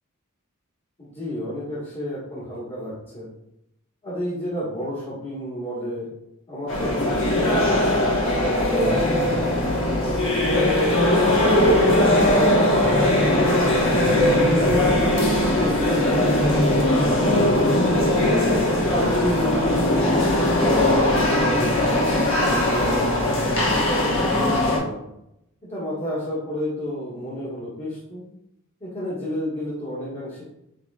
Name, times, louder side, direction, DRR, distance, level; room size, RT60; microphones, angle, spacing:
voice 1, 1.0-3.3 4.0-6.1 6.5-8.1 8.7-10.9 11.6-13.9 14.5-18.1 18.8-21.0 21.3-25.0 25.7-28.3 28.8-30.4, equal, 25° left, -10 dB, 1.3 m, -31 dB
museum hall big echo +group, 6.7-24.8, left 1 dB, 60° left, 1.2 m, -20 dB
6.7 x 2.9 x 2.3 m, 0.84 s
head